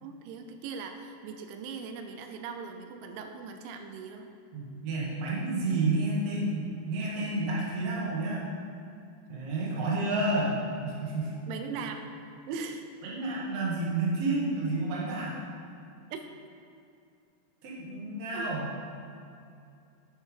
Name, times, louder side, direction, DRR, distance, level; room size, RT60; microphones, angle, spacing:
voice 1, 0.0-4.3 11.5-12.0 12.5-12.8 16.1-16.2 18.3-18.5, right 5 dB, 90° right, 6 dB, 3.1 m, -39 dB
voice 2, 4.5-8.4 9.3-10.6 10.8-11.3 13.0-15.4 17.6-18.7, right 2 dB, 50° right, -6 dB, 2.0 m, -30 dB
10.0 x 5.6 x 5.0 m, 2.6 s
omnidirectional pair, 5.3 m